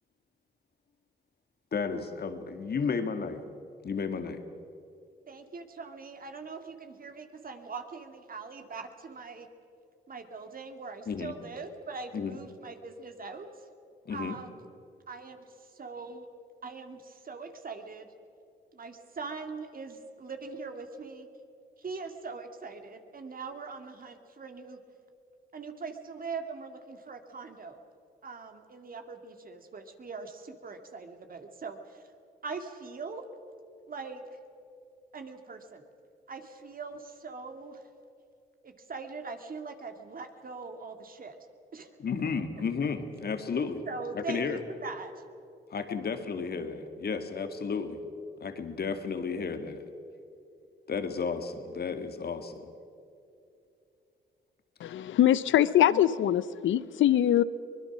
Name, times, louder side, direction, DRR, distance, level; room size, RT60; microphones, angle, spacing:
voice 1, 1.7-3.4 3.8-4.4 11.1-11.3 12.1-12.4 14.1-14.4 42.0-43.8 44.1-44.6 45.7-48.0 48.4-49.9 50.9-52.7 54.8-54.9, left 5 dB, 50° left, 7 dB, 2.2 m, -33 dB
voice 2, 5.3-9.5 10.1-13.7 14.1-14.7 15.1-16.3 16.6-18.1 18.7-21.3 21.8-24.8 25.5-27.8 28.2-32.0 32.4-33.3 33.9-34.2 35.1-35.8 36.3-37.8 38.6-41.4 41.7-42.0 43.8-45.2, right 4 dB, 45° right, 6 dB, 2.5 m, -41 dB
voice 3, 54.8-57.4, left 11 dB, 75° left, 17 dB, 0.8 m, -23 dB
23.5 x 21.0 x 6.2 m, 2.6 s
supercardioid pair, 65°, 20 cm